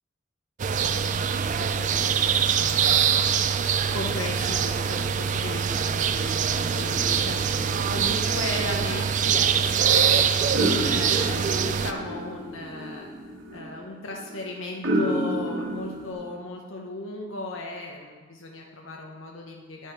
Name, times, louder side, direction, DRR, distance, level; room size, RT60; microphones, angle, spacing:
sound 1, 0.6-11.9, right 7 dB, 40° right, 0.3 m, -24 dB
voice 1, 0.9-3.4 3.9-10.3 10.6-13.1 13.5-19.9, left 2 dB, 80° left, 0 dB, 0.9 m, -37 dB
sound 2, 6.5-16.1, right 1 dB, 70° right, 1.7 m, -32 dB
10.5 x 5.5 x 4.8 m, 1.5 s
head